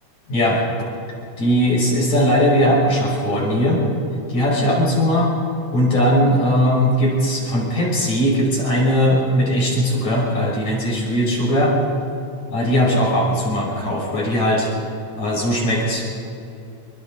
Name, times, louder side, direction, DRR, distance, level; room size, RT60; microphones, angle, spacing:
voice 1, 0.3-0.6 1.4-3.8 4.3-5.3 5.7-11.8 12.5-14.7 15.1-16.0, equal, 65° left, -4 dB, 6.9 m, -19 dB
27.5 x 25.0 x 4.0 m, 2.7 s
omnidirectional pair, 3.5 m